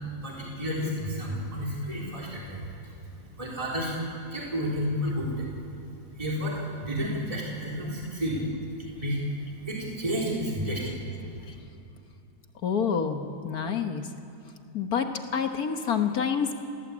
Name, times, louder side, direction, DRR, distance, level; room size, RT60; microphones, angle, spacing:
voice 1, 0.2-2.7 3.4-3.9 4.3-5.5 6.2-8.4 9.0-9.2 9.7-11.0, equal, 20° right, -4 dB, 3.9 m, -31 dB
voice 2, 12.6-14.1 14.7-16.6, left 6 dB, 65° left, 6 dB, 1.8 m, -28 dB
28.5 x 19.0 x 8.6 m, 2.6 s
omnidirectional pair, 1.7 m